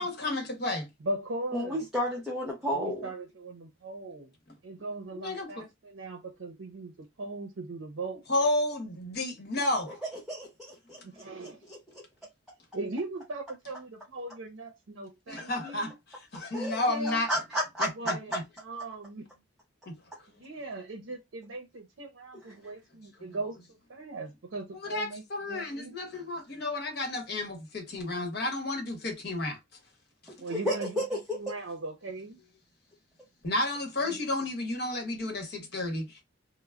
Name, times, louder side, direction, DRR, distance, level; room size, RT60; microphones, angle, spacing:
voice 1, 0.0-0.9 5.1-5.6 8.3-9.9 15.3-15.9 16.3-17.3 17.8-18.4 19.9-20.0 24.7-29.6 33.4-36.2, left 2 dB, 55° left, 1.0 m, -31 dB
voice 2, 1.0-1.8 2.6-4.3 4.6-8.2 11.0-11.6 12.7-16.0 16.7-17.3 18.0-18.3 18.6-19.3 20.4-26.0 30.4-32.4 34.0-34.2, right 2 dB, 75° right, 0.6 m, -39 dB
voice 3, 1.5-3.1 10.3-11.8 16.5-18.1 22.3-22.4 30.5-31.4, equal, ahead, 0.5 m, -32 dB
2.2 x 2.0 x 3.4 m
head